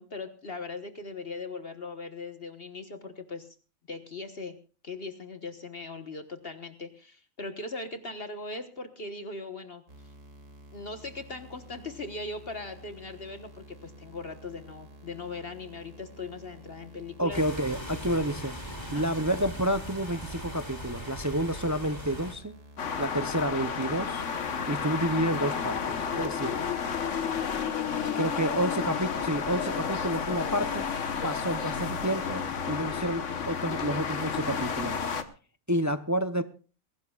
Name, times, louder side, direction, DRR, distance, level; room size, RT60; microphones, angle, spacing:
voice 1, 0.0-3.5 3.9-4.5 4.8-9.8 10.7-17.4 18.8-19.0, left 3 dB, 50° left, 1.5 m, -39 dB
sound 1, 9.9-27.1, right 1 dB, 90° right, 2.8 m, -51 dB
voice 2, 17.2-18.6 18.9-22.5 23.0-24.3 24.7-26.6 28.2-30.9 31.2-35.1 35.7-36.4, right 1 dB, 20° right, 0.5 m, -30 dB
sound 2, 17.3-22.3, equal, 20° left, 3.3 m, -40 dB
sound 3, 22.8-35.2, left 6 dB, 75° left, 1.5 m, -31 dB
22.5 x 17.5 x 2.4 m
omnidirectional pair, 1.3 m